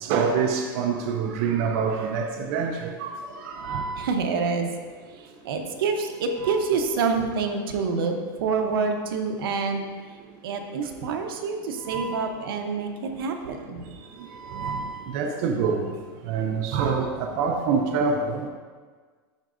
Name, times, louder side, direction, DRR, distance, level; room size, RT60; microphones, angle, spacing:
voice 1, 0.0-4.1 6.4-6.6 11.9-12.3 14.4-15.9 16.3-18.5, right 5 dB, 35° right, 2 dB, 0.4 m, -26 dB
voice 2, 4.0-4.7 5.2-9.8 10.4-13.9, right 4 dB, 75° right, 4 dB, 0.8 m, -27 dB
10.5 x 4.5 x 2.6 m, 1.5 s
supercardioid pair, 180°, 12 cm